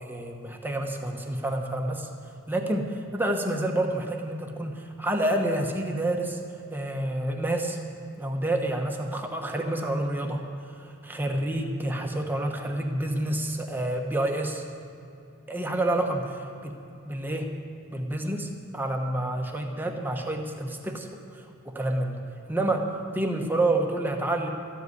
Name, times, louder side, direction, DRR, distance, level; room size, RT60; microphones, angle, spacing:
voice 1, 0.0-2.1 2.5-6.4 6.7-7.8 8.2-10.4 10.8-14.6 15.5-16.5 17.1-17.5 17.9-22.2 22.5-24.5, right 1 dB, 10° right, 2 dB, 1.0 m, -28 dB
13.5 x 8.0 x 9.5 m, 2.7 s
head